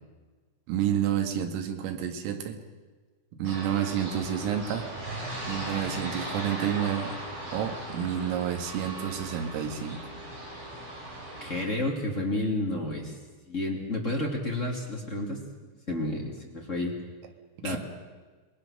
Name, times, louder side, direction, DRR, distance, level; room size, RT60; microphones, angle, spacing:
voice 1, 0.7-2.6 3.3-4.9 5.5-7.1 7.5-10.1 17.6-17.8, right 9 dB, 85° right, 4 dB, 4.6 m, -30 dB
sound 1, 3.4-11.6, right 1 dB, 30° right, 5.7 m, -38 dB
voice 2, 11.4-13.2 13.5-15.4 15.9-16.9 17.6-17.8, left 2 dB, 25° left, -1 dB, 1.9 m, -30 dB
27.5 x 20.5 x 6.6 m, 1.4 s
omnidirectional pair, 5.9 m